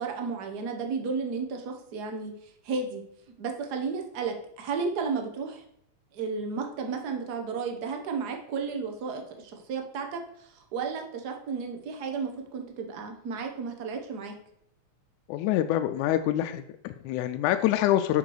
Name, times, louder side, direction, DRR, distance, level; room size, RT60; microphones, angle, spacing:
voice 1, 0.0-3.0 3.4-5.6 6.1-14.3, right 5 dB, 70° right, 4 dB, 0.9 m, -33 dB
voice 2, 15.3-18.2, left 13 dB, 85° left, 8 dB, 2.0 m, -26 dB
7.9 x 5.7 x 4.7 m, 0.72 s
omnidirectional pair, 3.4 m